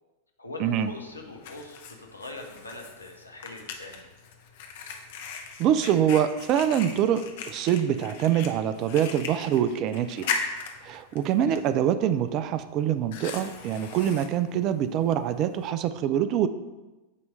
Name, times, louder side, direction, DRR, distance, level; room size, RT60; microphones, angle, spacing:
voice 1, 0.4-4.1 11.5-11.7, left 2 dB, 80° left, 1 dB, 1.0 m, -42 dB
Fire, 0.7-15.7, left 5 dB, 55° left, 0.8 m, -39 dB
voice 2, 5.6-10.3 10.8-16.5, right 9 dB, 40° right, 12 dB, 0.4 m, -25 dB
8.3 x 3.1 x 5.2 m, 1.1 s
figure-of-eight pair, 90°, 0 cm